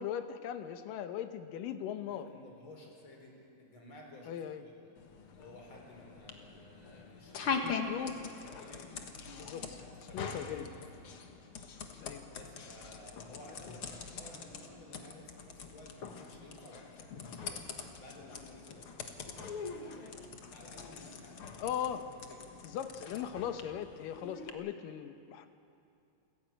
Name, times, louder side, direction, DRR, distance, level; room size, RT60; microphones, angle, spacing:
voice 1, 0.0-2.3 4.3-4.6 7.6-8.1 9.4-9.6 10.1-10.7 12.0-12.3 21.6-22.0 22.6-25.5, left 9 dB, 70° left, 9 dB, 2.3 m, -39 dB
voice 2, 2.1-4.4 4.6-4.9 5.3-8.9 9.6-11.1 12.3-17.7 18.0-18.9 19.3-22.5, left 1 dB, 30° left, 0 dB, 5.0 m, -54 dB
sound 1, 5.0-24.5, left 5 dB, 55° left, 1.6 m, -43 dB
29.0 x 15.5 x 9.0 m, 2.6 s
omnidirectional pair, 4.4 m